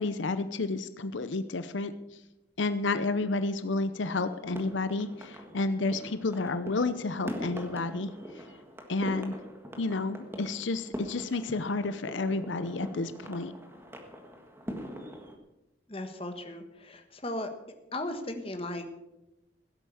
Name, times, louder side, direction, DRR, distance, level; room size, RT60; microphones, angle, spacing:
voice 1, 0.0-1.9 2.6-8.1 8.4-8.5 8.9-9.4 9.8-13.5, left 3 dB, 80° left, 12 dB, 0.7 m, -31 dB
sound 1, 4.0-15.3, equal, 10° right, 1.6 m, -43 dB
voice 2, 15.9-17.5 17.9-18.9, left 1 dB, 30° left, 7 dB, 1.4 m, -36 dB
16.5 x 8.3 x 7.1 m, 0.96 s
head